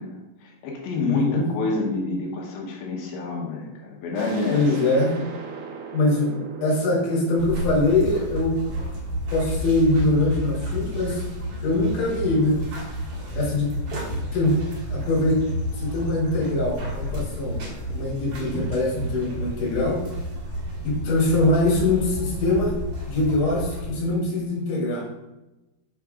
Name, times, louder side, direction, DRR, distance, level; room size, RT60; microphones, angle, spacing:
voice 1, 0.0-4.6, left 3 dB, 85° left, -2 dB, 2.0 m, -28 dB
voice 2, 1.0-1.4 4.5-5.1 5.9-6.3 6.6-8.5 9.3-11.2 11.6-12.6 13.3-13.7 14.1-14.6 14.9-15.4 15.8-20.0 20.8-22.7 23.1-25.1, left 2 dB, 55° left, -4 dB, 2.7 m, -23 dB
sound 1, 4.2-9.6, right 6 dB, 85° right, 2.3 m, -39 dB
sound 2, 7.4-23.9, equal, 70° right, 1.4 m, -31 dB
6.6 x 3.6 x 4.9 m, 1.0 s
omnidirectional pair, 5.5 m